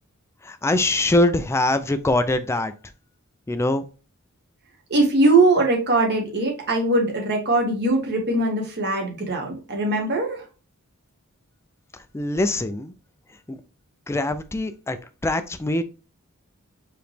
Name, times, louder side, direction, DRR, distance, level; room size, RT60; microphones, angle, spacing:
voice 1, 0.4-2.7 3.5-3.8 12.1-12.9 13.5-13.6 14.1-15.0 15.2-15.8, left 2 dB, 10° left, 0.4 m, -23 dB
voice 2, 4.9-10.4, right 2 dB, 50° right, 1.5 m, -21 dB
4.9 x 3.1 x 3.3 m
head